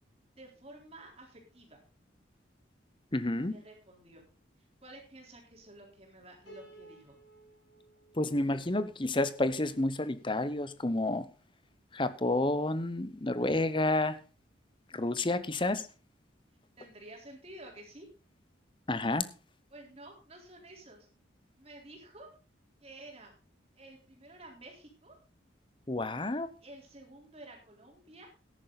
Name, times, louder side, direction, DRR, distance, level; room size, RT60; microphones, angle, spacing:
voice 1, 0.4-1.8 3.5-4.2 4.8-7.2 16.8-18.1 19.7-21.1 21.5-22.3 22.8-23.3 23.8-25.2 26.6-28.3, right 1 dB, 30° right, 0 dB, 3.8 m, -51 dB
voice 2, 3.1-3.6 8.1-11.3 11.9-14.2 14.9-15.9 18.9-19.2 25.9-26.5, left 2 dB, 25° left, 14 dB, 0.8 m, -30 dB
Piano, 6.5-9.7, right 2 dB, 80° left, 6.6 m, -57 dB
13.5 x 10.5 x 4.0 m, 0.35 s
head